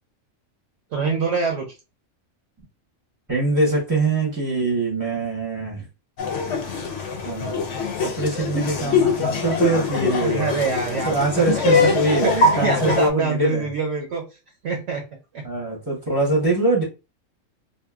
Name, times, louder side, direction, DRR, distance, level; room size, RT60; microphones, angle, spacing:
voice 1, 0.9-1.7 10.2-11.9 12.2-14.2 14.6-15.0 15.3-15.4, right 4 dB, 65° right, 2 dB, 1.0 m, -25 dB
voice 2, 3.3-5.9 7.2-7.6 8.0-10.7 10.9-13.7 15.4-16.8, right 2 dB, 15° right, -3 dB, 0.9 m, -23 dB
Laughter, 6.2-13.1, left 4 dB, 70° left, 0.9 m, -23 dB
2.8 x 2.6 x 2.3 m, 0.28 s
omnidirectional pair, 1.3 m